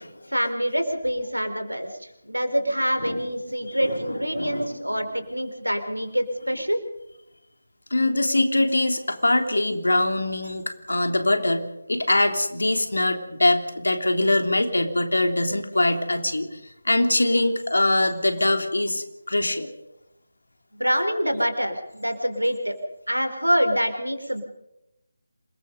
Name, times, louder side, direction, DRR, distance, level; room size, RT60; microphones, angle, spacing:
voice 1, 0.3-1.9 2.2-6.8 20.7-22.7 23.1-24.4, equal, 85° right, 7 dB, 4.2 m, -25 dB
voice 2, 3.7-4.0 4.3-4.7 7.9-16.5 16.8-19.7, left 1 dB, 65° left, 6 dB, 3.4 m, -23 dB
27.5 x 21.5 x 5.4 m, 0.87 s
figure-of-eight pair, 155°, 0 cm